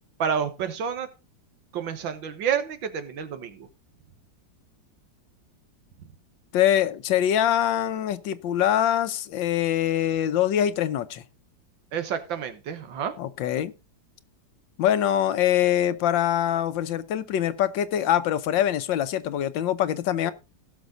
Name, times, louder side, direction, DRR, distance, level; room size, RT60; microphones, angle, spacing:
voice 1, 0.2-1.1 1.7-3.7 11.9-13.1, right 7 dB, 90° right, 2.0 m, -29 dB
voice 2, 6.5-11.2 13.2-13.7 14.8-20.3, left 11 dB, 85° left, 1.5 m, -24 dB
17.0 x 6.3 x 3.8 m
omnidirectional pair, 2.0 m